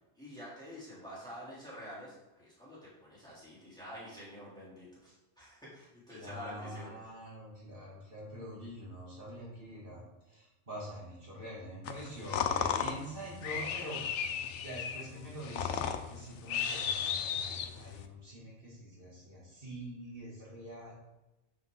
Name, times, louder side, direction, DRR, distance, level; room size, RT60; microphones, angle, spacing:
voice 1, 0.2-6.9, equal, 5° left, -8 dB, 3.1 m, -48 dB
voice 2, 6.1-14.4 14.6-20.9, equal, 50° right, -7 dB, 2.8 m, -45 dB
sound 1, 11.8-18.1, left 7 dB, 85° left, 1.0 m, -35 dB
7.4 x 7.3 x 3.9 m, 1.0 s
omnidirectional pair, 1.2 m